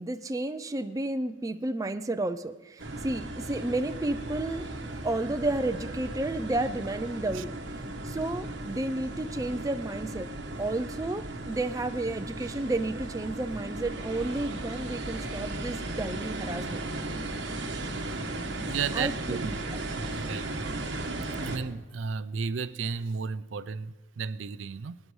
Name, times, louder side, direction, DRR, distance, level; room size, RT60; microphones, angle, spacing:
voice 1, 0.0-4.7 5.0-7.5 8.0-10.3 10.6-16.8 18.9-19.8, right 2 dB, 20° right, 0.4 m, -32 dB
sound 1, 2.8-21.6, right 2 dB, 70° right, 1.3 m, -36 dB
voice 2, 18.7-19.5 20.0-20.9 21.4-25.0, right 5 dB, 85° right, 0.4 m, -34 dB
22.0 x 9.9 x 3.2 m
head